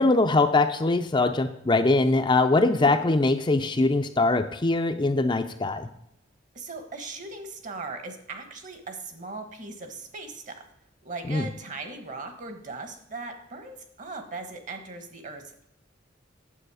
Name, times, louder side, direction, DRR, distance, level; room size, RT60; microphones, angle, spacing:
voice 1, 0.0-5.9 11.3-11.5, left 2 dB, 25° left, 7 dB, 0.5 m, -22 dB
voice 2, 6.5-10.6 11.0-15.6, right 3 dB, 40° right, 7 dB, 1.3 m, -39 dB
9.1 x 7.3 x 4.9 m, 0.76 s
head